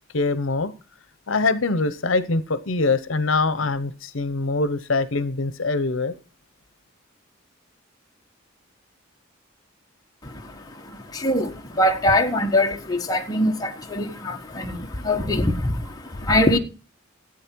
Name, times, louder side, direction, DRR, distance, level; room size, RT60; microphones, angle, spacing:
voice 1, 0.1-0.7 1.3-6.1, left 3 dB, 75° left, 0.9 m, -23 dB
voice 2, 10.2-16.6, left 1 dB, 20° left, 1.4 m, -23 dB
13.0 x 8.8 x 4.5 m
head